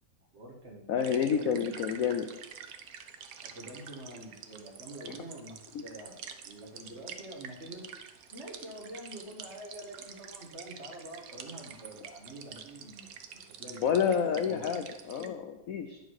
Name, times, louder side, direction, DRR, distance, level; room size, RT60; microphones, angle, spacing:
voice 1, 0.3-1.7 3.4-6.2 6.4-7.9 8.3-14.1 14.4-14.7, right 1 dB, 35° right, -1 dB, 1.7 m, -46 dB
voice 2, 0.9-2.3 5.7-5.8 13.8-16.0, left 7 dB, 70° left, 6 dB, 0.8 m, -29 dB
sound 1, 1.0-15.3, right 7 dB, 60° right, 1.0 m, -48 dB
10.5 x 6.4 x 4.7 m, 0.92 s
omnidirectional pair, 2.1 m